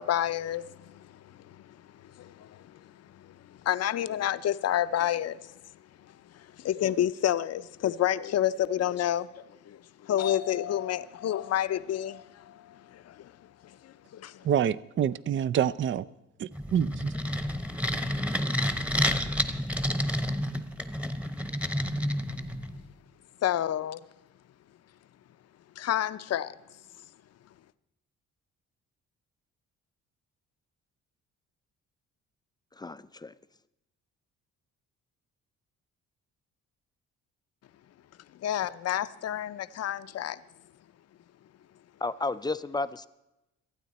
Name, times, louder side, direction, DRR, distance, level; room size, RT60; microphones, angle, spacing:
voice 1, 0.0-5.6 6.1-13.3 13.6-14.5 23.4-24.0 25.8-26.6 38.4-40.4, left 11 dB, 55° left, 0.6 m, -30 dB
voice 2, 14.4-16.0 16.4-17.1, right 9 dB, 40° right, 0.4 m, -27 dB
sound 1, 16.5-22.8, equal, 5° right, 1.0 m, -30 dB
voice 3, 32.7-33.3 42.0-43.1, left 3 dB, 15° left, 0.4 m, -32 dB
27.5 x 9.3 x 4.1 m
cardioid pair, 90°, 30 cm